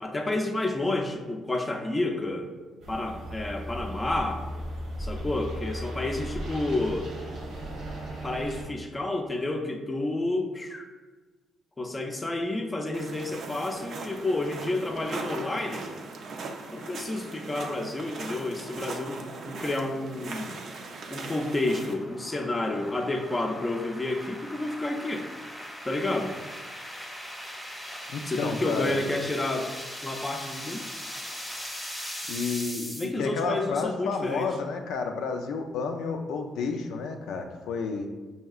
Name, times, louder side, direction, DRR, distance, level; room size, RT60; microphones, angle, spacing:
voice 1, 0.0-2.5 2.9-4.4 5.0-7.1 8.1-10.9 11.8-15.9 16.7-20.6 21.1-25.3 25.8-26.3 28.3-29.7 30.0-30.8 33.0-34.5, left 2 dB, 20° left, 3 dB, 0.4 m, -30 dB
sound 1, 2.8-8.7, equal, 85° right, 1.0 m, -36 dB
sound 2, 12.9-21.9, right 3 dB, 65° right, 0.5 m, -39 dB
sound 3, 19.2-33.0, equal, 5° left, 0.9 m, -40 dB
voice 2, 28.1-29.0 32.3-38.1, left 4 dB, 85° left, 4 dB, 0.3 m, -31 dB
5.4 x 2.7 x 2.4 m, 1.3 s
cardioid pair, 90°, 0 cm